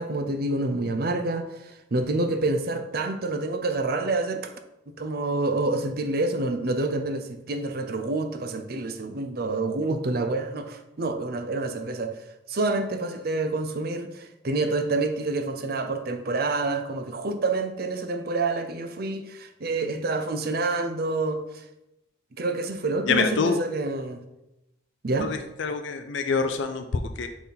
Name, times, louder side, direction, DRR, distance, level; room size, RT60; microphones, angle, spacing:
voice 1, 0.0-4.5 4.9-12.2 12.5-21.6 22.4-24.2 25.0-25.3, right 2 dB, 55° right, 0.6 m, -28 dB
voice 2, 23.0-23.6 25.2-27.3, left 5 dB, 80° left, 0.4 m, -26 dB
5.8 x 4.2 x 4.0 m
head